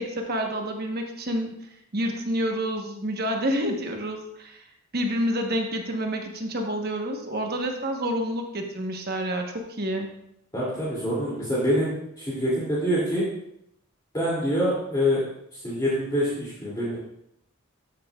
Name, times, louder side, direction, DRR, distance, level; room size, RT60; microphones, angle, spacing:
voice 1, 0.0-1.5 1.9-4.6 4.9-10.1, equal, 45° right, 3 dB, 1.1 m, -28 dB
voice 2, 10.5-11.9 12.2-13.3 14.1-15.2 15.5-17.0, equal, 20° left, -8 dB, 2.6 m, -25 dB
13.0 x 8.7 x 2.4 m, 0.77 s
head